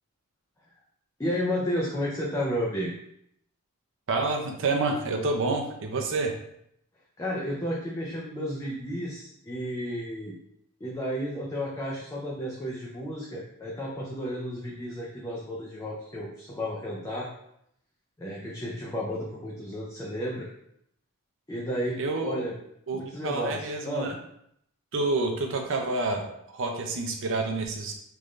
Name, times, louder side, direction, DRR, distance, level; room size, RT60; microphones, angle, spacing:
voice 1, 1.2-2.9 7.2-10.3 10.8-17.3 18.2-20.5 21.5-22.5 22.9-24.1, equal, 15° left, -4 dB, 0.4 m, -32 dB
voice 2, 4.1-6.3 22.0-22.4 22.9-24.1 24.9-27.9, right 3 dB, 60° right, 2 dB, 0.6 m, -28 dB
3.5 x 2.5 x 3.1 m, 0.74 s
head